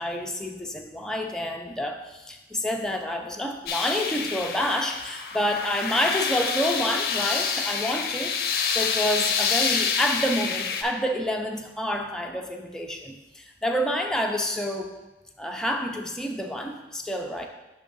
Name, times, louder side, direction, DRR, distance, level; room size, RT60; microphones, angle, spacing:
voice 1, 0.0-14.9 15.4-17.5, equal, 5° left, 2 dB, 0.4 m, -28 dB
sound 1, 3.7-10.8, left 6 dB, 55° left, 0.5 m, -27 dB
6.0 x 3.7 x 5.3 m, 1.1 s
head